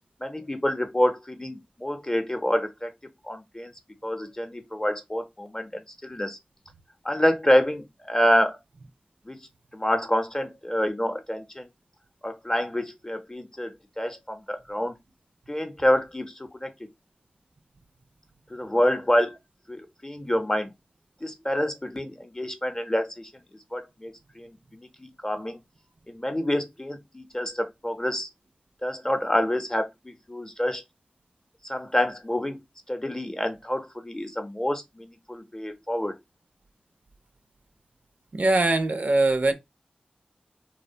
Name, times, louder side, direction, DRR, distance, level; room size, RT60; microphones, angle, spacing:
voice 1, 0.2-2.9 3.2-3.7 4.0-6.4 7.0-8.6 9.3-9.4 9.7-11.7 12.2-15.0 15.5-16.7 18.5-19.4 19.7-20.7 21.2-23.3 23.7-25.6 26.1-28.3 28.8-30.8 31.6-32.6 32.9-36.1, left 1 dB, 20° left, 0.6 m, -27 dB
voice 2, 38.3-39.5, right 2 dB, 60° right, 0.4 m, -22 dB
2.6 x 2.1 x 2.6 m
cardioid pair, 40°, 3 cm